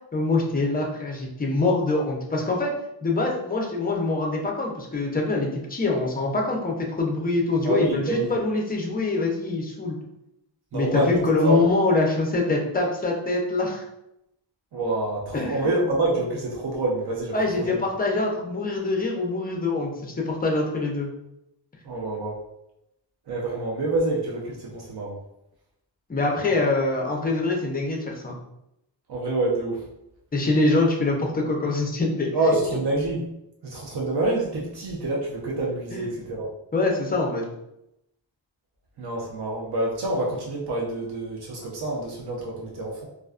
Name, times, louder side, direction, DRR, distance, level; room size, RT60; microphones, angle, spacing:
voice 1, 0.1-2.7 3.0-10.0 10.7-13.8 15.3-15.7 17.3-21.1 26.1-28.4 30.3-32.3 35.9-36.0 36.7-37.4, left 2 dB, 20° left, 0 dB, 0.4 m, -24 dB
voice 2, 7.6-8.4 10.7-11.6 14.7-17.8 21.8-22.4 23.3-25.2 29.1-29.8 32.3-33.3 33.6-36.5 39.0-43.1, right 2 dB, 60° right, -3 dB, 0.6 m, -27 dB
2.4 x 2.2 x 2.4 m, 0.83 s
wide cardioid pair, 140°, 45 cm